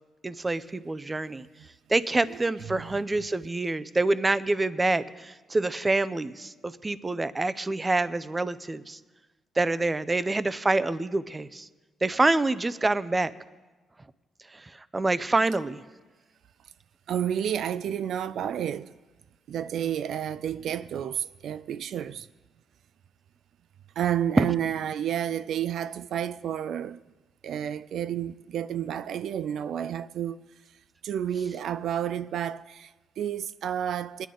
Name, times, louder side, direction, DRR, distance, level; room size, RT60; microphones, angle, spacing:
voice 1, 0.2-1.5 1.9-9.0 9.6-11.7 12.0-13.3 14.5-15.8 24.4-24.5, right 2 dB, 20° right, 0.5 m, -26 dB
voice 2, 2.7-3.0 17.1-18.9 19.5-22.3 24.0-27.0 27.4-30.4 31.0-34.3, right 9 dB, 70° right, 0.3 m, -30 dB
21.0 x 10.5 x 3.8 m
cardioid pair, 90°, 0 cm